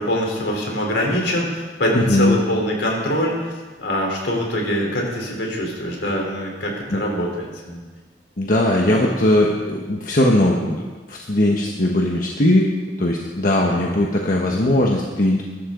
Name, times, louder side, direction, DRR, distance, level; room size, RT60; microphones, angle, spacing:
voice 1, 0.0-3.5 3.8-7.8 8.9-9.1 13.6-13.8, equal, 75° left, -1 dB, 3.9 m, -24 dB
voice 2, 1.9-2.4 6.9-7.1 8.4-10.8 11.1-12.7 13.0-15.4, left 1 dB, 50° left, -1 dB, 1.3 m, -19 dB
22.5 x 12.0 x 3.9 m, 1.3 s
head